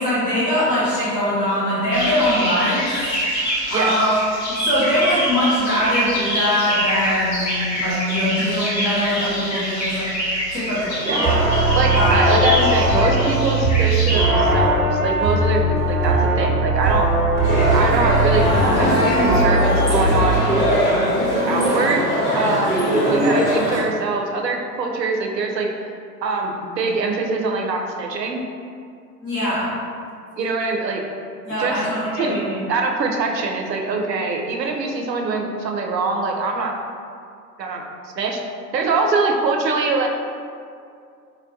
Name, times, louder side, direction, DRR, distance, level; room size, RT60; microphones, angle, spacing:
voice 1, 0.0-2.9 3.3-4.1 4.5-10.1 10.5-11.2 11.9-12.2 29.2-29.7 31.4-32.5, left 1 dB, 85° left, -14 dB, 1.2 m, -22 dB
sound 1, 1.9-14.3, equal, 15° left, 0.5 m, -25 dB
sound 2, 11.1-20.6, right 1 dB, 35° right, 0.8 m, -19 dB
voice 2, 11.8-17.1 17.7-18.5 18.8-20.5 21.5-22.1 22.3-25.7 26.2-28.4 30.4-31.0 31.6-31.8 32.2-32.3 32.7-36.8 37.6-37.8 38.2-38.4 38.7-40.1, right 3 dB, 75° right, 2 dB, 0.6 m, -23 dB
sound 3, 17.4-23.8, equal, 70° left, 1.3 m, -20 dB
4.3 x 2.2 x 2.5 m, 2.3 s
figure-of-eight pair, 105°, 50 cm